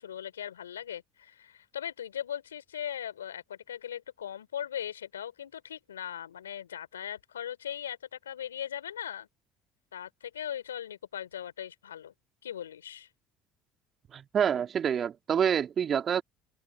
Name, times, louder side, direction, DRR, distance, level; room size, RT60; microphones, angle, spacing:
voice 1, 0.0-9.3 9.9-12.1 12.4-13.1, left 9 dB, 85° left, 3.8 m, -39 dB
voice 2, 14.1-16.2, right 8 dB, 45° right, 3.4 m, -27 dB
hypercardioid pair, 60°, 0 cm